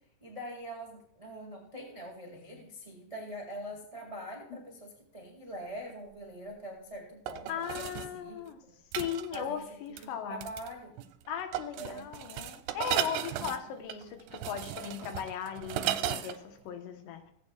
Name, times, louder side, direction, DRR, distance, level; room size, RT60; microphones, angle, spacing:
voice 1, 0.2-7.5 7.8-8.8 9.3-9.6 10.0-10.9 11.7-12.1, equal, 40° right, -1 dB, 0.4 m, -43 dB
sound 1, 5.9-6.0 7.3-8.1 8.9-9.5 10.0-10.1 10.4-10.7 11.0-11.3 11.5-16.4 16.7-16.8, right 12 dB, 85° right, 2.8 m, -35 dB
voice 2, 7.5-8.6 9.0-10.5 11.3-17.3, left 8 dB, 80° left, 6 dB, 3.2 m, -38 dB
17.5 x 8.8 x 2.4 m, 0.75 s
omnidirectional pair, 5.0 m